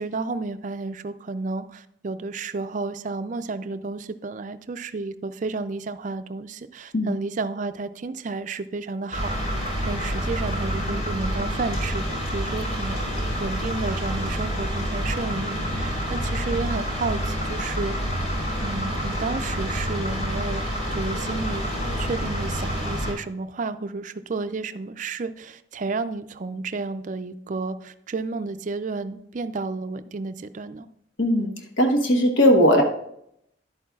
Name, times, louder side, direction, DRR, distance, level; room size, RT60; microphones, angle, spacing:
voice 1, 0.0-13.0 13.4-18.0 18.6-21.6 22.0-30.9, right 3 dB, 40° right, 11 dB, 0.4 m, -31 dB
sound 1, 9.1-23.1, equal, 45° left, 3.8 m, -28 dB
voice 2, 31.2-31.5 31.8-32.8, equal, 75° left, 3 dB, 1.3 m, -18 dB
11.0 x 8.5 x 2.4 m, 0.75 s
head